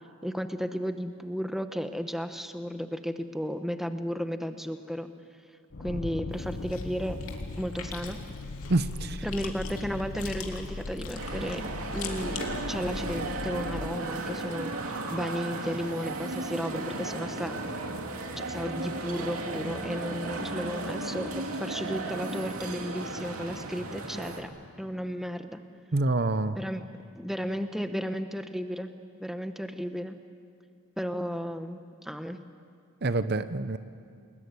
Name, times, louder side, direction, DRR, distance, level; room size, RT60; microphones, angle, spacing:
voice 1, 0.2-5.1 5.8-7.2 7.6-8.2 9.2-11.6 11.9-17.5 18.4-24.5 24.8-25.6 26.5-26.8 27.2-28.9 29.2-30.2 31.0-32.4, equal, ahead, 7 dB, 1.0 m, -34 dB
sound 1, 5.7-14.0, left 3 dB, 55° left, 0.6 m, -39 dB
Chewing mastication, 6.3-13.2, left 4 dB, 80° left, 3.0 m, -43 dB
voice 2, 8.7-9.3 25.9-26.6 33.0-33.8, right 2 dB, 45° right, 12 dB, 0.7 m, -27 dB
sound 2, 11.2-24.4, right 2 dB, 85° right, 2.7 m, -35 dB
29.0 x 21.0 x 9.6 m, 2.2 s
head